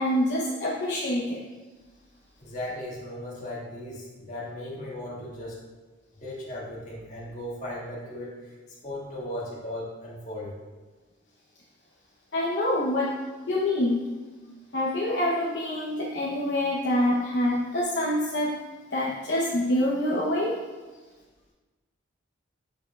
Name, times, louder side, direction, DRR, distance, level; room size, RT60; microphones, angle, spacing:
voice 1, 0.0-1.4 12.3-13.1 13.5-14.1 14.7-18.5 18.9-20.6, left 1 dB, 60° left, -5 dB, 0.8 m, -26 dB
voice 2, 2.4-5.6 6.2-8.5 8.8-10.5, left 1 dB, 40° left, -6 dB, 1.8 m, -37 dB
7.5 x 6.2 x 2.3 m, 1.3 s
head